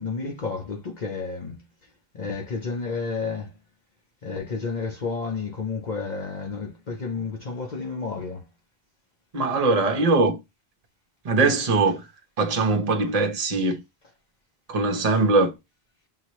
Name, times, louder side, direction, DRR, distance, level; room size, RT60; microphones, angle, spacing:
voice 1, 0.0-1.6 2.1-3.5 4.2-8.5, left 4 dB, 45° left, 0.9 m, -31 dB
voice 2, 9.3-10.4 11.2-12.0 12.4-13.8 14.7-15.5, right 3 dB, 40° right, 0.9 m, -21 dB
5.7 x 2.8 x 3.1 m
omnidirectional pair, 1.1 m